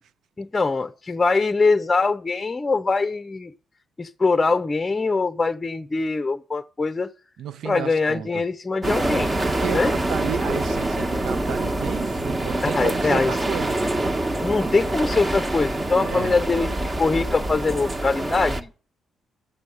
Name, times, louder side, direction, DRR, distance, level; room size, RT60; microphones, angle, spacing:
voice 1, 0.4-3.5 4.0-7.1 7.6-9.3 9.7-9.9 12.6-13.4 14.4-18.7, left 3 dB, 25° left, 0.7 m, -23 dB
voice 2, 7.4-8.4 9.6-13.8 16.0-16.4, right 8 dB, 70° right, 0.8 m, -32 dB
sound 1, 8.8-18.6, right 1 dB, 25° right, 1.4 m, -25 dB
13.0 x 7.0 x 7.8 m
cardioid pair, 90°, 0 cm